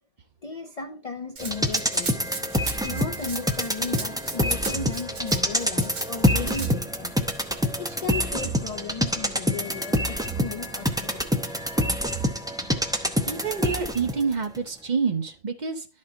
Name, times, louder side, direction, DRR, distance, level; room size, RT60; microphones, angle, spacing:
voice 1, 0.4-2.2 2.8-7.2 7.8-11.2, left 4 dB, 45° left, 6 dB, 0.5 m, -35 dB
sound 1, 1.4-14.2 14.6-14.7, equal, 5° right, 0.5 m, -26 dB
Rattle (instrument), 1.4-6.1 6.4-6.7, right 4 dB, 75° right, 1.4 m, -38 dB
voice 2, 13.3-15.9, right 5 dB, 45° right, 6 dB, 0.9 m, -27 dB
11.5 x 4.4 x 3.7 m, 0.36 s
omnidirectional pair, 1.1 m